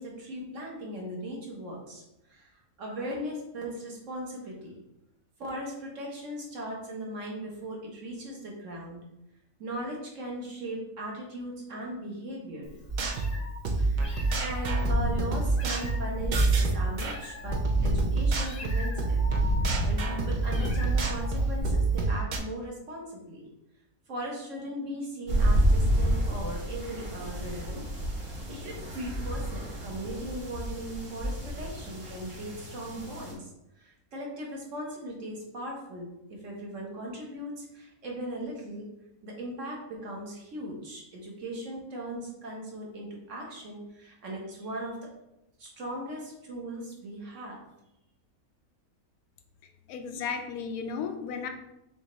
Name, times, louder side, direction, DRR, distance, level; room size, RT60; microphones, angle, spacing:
voice 1, 0.0-2.0 2.3-2.5 2.8-4.7 5.4-9.0 9.6-12.7 13.8-19.2 19.8-23.4 24.1-27.9 28.5-33.5 33.8-38.9 39.2-45.0 45.6-47.6, right 1 dB, 60° right, -2 dB, 1.4 m, -38 dB
Meow, 12.7-22.0, equal, 35° left, 0.7 m, -33 dB
sound 1, 12.9-17.1 17.5-22.4, right 3 dB, 85° right, 0.4 m, -28 dB
sound 2, 25.3-33.3, right 1 dB, 45° right, 1.5 m, -30 dB
voice 2, 49.9-51.5, left 6 dB, 85° left, 6 dB, 1.1 m, -34 dB
6.1 x 2.5 x 3.1 m, 0.88 s
omnidirectional pair, 1.5 m